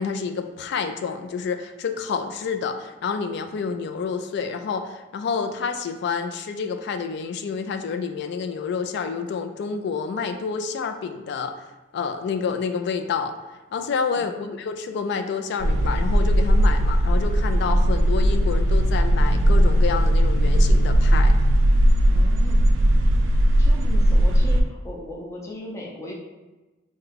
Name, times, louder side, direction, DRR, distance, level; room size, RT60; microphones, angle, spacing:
voice 1, 0.0-11.5 11.9-13.3 13.7-14.3 14.6-21.4, left 5 dB, 65° left, 8 dB, 0.3 m, -28 dB
voice 2, 14.1-14.6 22.1-22.6 23.6-26.1, left 1 dB, 15° left, -3 dB, 0.6 m, -37 dB
sound 1, 15.6-24.6, equal, 75° right, 0.4 m, -18 dB
3.5 x 2.1 x 3.3 m, 1.2 s
head